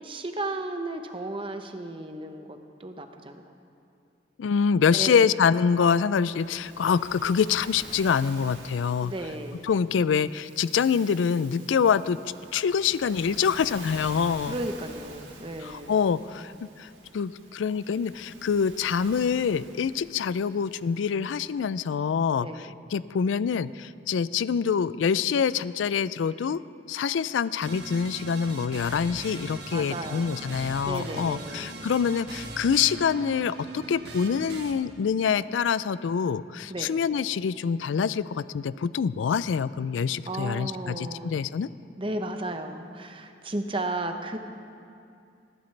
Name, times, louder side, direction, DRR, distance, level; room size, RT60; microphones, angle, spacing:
voice 1, 0.0-3.4 4.9-5.3 9.0-9.7 14.4-15.9 22.4-22.7 29.7-30.5 30.8-31.7 36.7-36.9 40.3-41.3 42.0-44.4, right 2 dB, 30° right, 6 dB, 0.8 m, -34 dB
voice 2, 4.4-9.1 9.6-12.2 12.5-14.6 15.6-16.5 16.8-26.6 26.9-41.7, left 6 dB, 90° left, 17 dB, 0.4 m, -25 dB
Waves surf, 6.0-21.5, right 3 dB, 80° right, 2.1 m, -48 dB
sound 1, 27.6-34.7, right 3 dB, 60° right, 1.4 m, -40 dB
20.5 x 15.5 x 3.3 m, 2.5 s
head